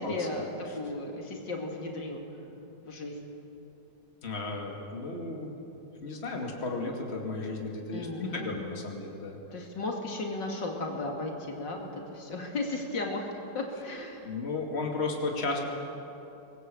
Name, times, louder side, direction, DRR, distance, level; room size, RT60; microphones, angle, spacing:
voice 1, 0.0-2.2 2.8-3.2 7.9-8.5 9.5-14.3, left 2 dB, 75° left, 1 dB, 3.0 m, -35 dB
voice 2, 4.2-5.6 6.0-9.7 14.2-15.6, left 3 dB, 35° left, 1 dB, 2.7 m, -34 dB
24.0 x 20.5 x 7.9 m, 2.9 s
omnidirectional pair, 2.0 m